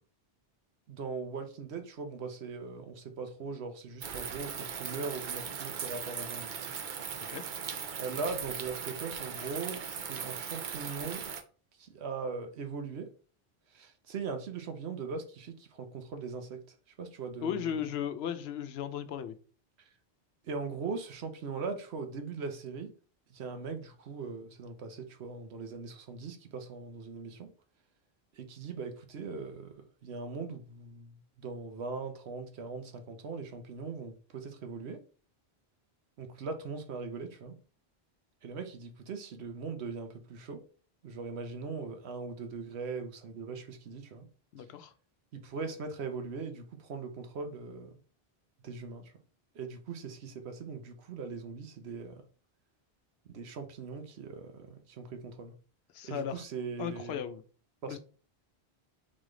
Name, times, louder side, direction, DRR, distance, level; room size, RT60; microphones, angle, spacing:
voice 1, 0.9-6.7 8.0-11.2 11.8-13.1 13.7-16.6 17.0-17.9 20.4-22.9 23.3-27.5 28.3-29.7 30.0-35.0 36.2-37.5 38.4-40.6 41.0-44.3 45.3-47.9 48.6-49.1 49.5-52.2 53.3-55.5 56.0-57.2 57.8-58.0, right 4 dB, 85° right, 1.1 m, -40 dB
sound 1, 4.0-11.4, right 7 dB, 55° right, 0.7 m, -39 dB
voice 2, 17.4-19.4 44.5-44.9 55.9-56.4 56.8-57.4 57.9-58.0, left 8 dB, 80° left, 0.8 m, -36 dB
4.0 x 3.2 x 3.7 m
omnidirectional pair, 1.1 m